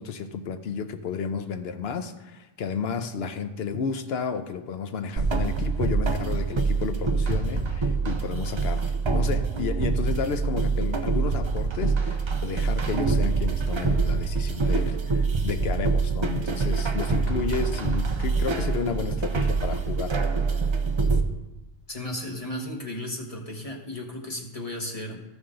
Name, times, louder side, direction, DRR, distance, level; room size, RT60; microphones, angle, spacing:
voice 1, 0.0-20.2, left 6 dB, 80° left, 9 dB, 0.9 m, -32 dB
sound 1, 5.2-21.2, right 4 dB, 35° right, 0.6 m, -25 dB
voice 2, 21.9-25.2, left 1 dB, 35° left, 0 dB, 1.4 m, -34 dB
14.5 x 5.4 x 3.8 m, 1.0 s
omnidirectional pair, 1.0 m